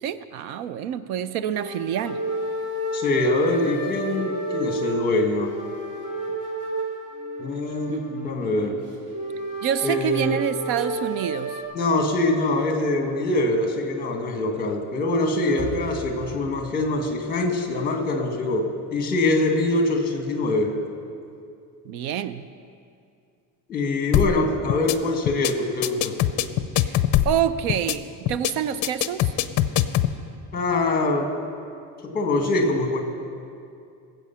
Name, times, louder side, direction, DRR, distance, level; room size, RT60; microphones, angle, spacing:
voice 1, 0.0-2.2 7.9-8.3 9.6-11.6 21.8-22.5 26.8-29.3, right 9 dB, 85° right, 13 dB, 0.8 m, -27 dB
sound 1, 1.5-11.6, right 1 dB, 50° right, 3.0 m, -32 dB
voice 2, 2.9-5.5 7.4-8.8 9.8-10.4 11.7-20.7 23.7-26.1 30.5-31.3 32.0-33.0, left 2 dB, 20° left, 3 dB, 1.6 m, -24 dB
sound 2, 15.6-18.7, left 2 dB, 20° right, 2.5 m, -40 dB
sound 3, 24.1-24.4 24.7-25.0 25.3-25.5 25.8-27.4 27.7-28.0 28.3-28.5 28.8-30.1, left 13 dB, 45° left, 0.6 m, -22 dB
20.5 x 7.9 x 5.7 m, 2.5 s
cardioid pair, 160°, 42 cm